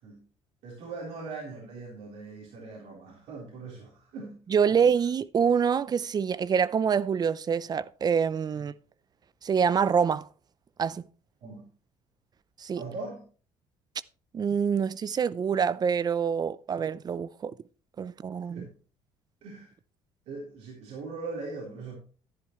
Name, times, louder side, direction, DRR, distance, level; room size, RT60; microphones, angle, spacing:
voice 1, 0.6-4.4 11.4-11.6 12.8-13.2 18.4-18.7 19.4-19.7 20.3-22.0, right 3 dB, 70° right, 3.7 m, -40 dB
voice 2, 4.5-8.7 9.4-10.3 10.8-11.0 12.6-12.8 14.3-17.5 18.0-18.7, right 7 dB, 35° right, 0.5 m, -26 dB
11.5 x 10.0 x 3.1 m
supercardioid pair, 80°, 11 cm